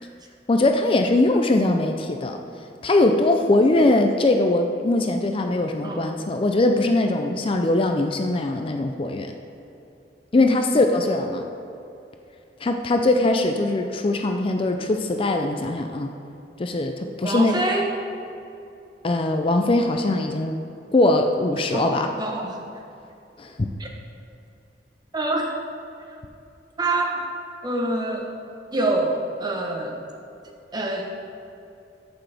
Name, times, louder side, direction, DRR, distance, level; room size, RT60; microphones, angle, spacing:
voice 1, 0.5-2.4 2.8-9.3 10.3-11.5 12.6-16.1 16.6-17.6 19.0-20.6 20.9-22.1 23.4-23.7, left 2 dB, 30° left, 5 dB, 0.4 m, -21 dB
voice 2, 10.4-10.8 17.2-17.9 21.7-22.6 23.8-23.9 25.1-25.5 26.8-27.2 27.6-28.3 28.7-30.0 30.7-31.2, right 2 dB, 25° right, 1 dB, 0.9 m, -26 dB
14.5 x 6.0 x 3.4 m, 2.6 s
head